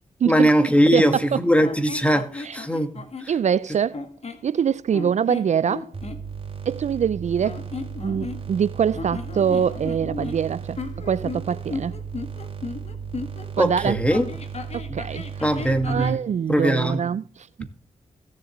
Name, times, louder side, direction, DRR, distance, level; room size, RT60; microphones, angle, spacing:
voice 1, 0.2-3.3 13.6-14.2 15.4-16.2 16.5-17.1, equal, 10° left, 2.0 m, -21 dB
voice 2, 0.9-1.2 2.4-2.6 3.3-4.0 4.4-5.9 6.7-7.6 8.0-10.8 11.0-12.0 13.6-14.0 14.7-15.2 15.9-17.5, right 8 dB, 60° right, 0.4 m, -24 dB
sound 1, 1.6-3.3 3.9-4.5 4.9-6.2 7.4-8.6 8.9-13.5 14.1-16.2, left 3 dB, 50° left, 1.6 m, -35 dB
sound 2, 5.9-16.1, right 6 dB, 40° right, 3.2 m, -35 dB
16.5 x 7.3 x 3.1 m
cardioid pair, 50°, 14 cm